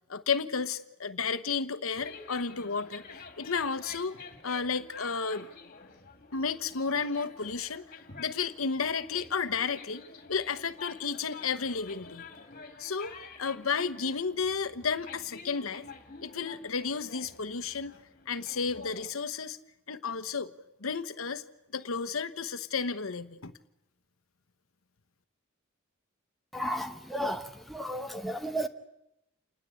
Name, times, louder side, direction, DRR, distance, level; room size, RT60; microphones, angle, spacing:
voice 1, 0.1-3.0 3.4-4.1 4.4-5.5 6.3-7.8 8.2-10.0 10.3-12.3 12.8-15.9 16.2-17.9 18.3-19.6 19.9-20.5 20.8-21.5 21.7-23.5, left 5 dB, 90° left, 12 dB, 1.1 m, -32 dB
sound 1, 1.9-19.1, left 4 dB, 45° left, 2.5 m, -49 dB
voice 2, 26.5-28.7, equal, ahead, 4 dB, 0.9 m, -33 dB
28.5 x 19.5 x 8.4 m, 0.88 s
head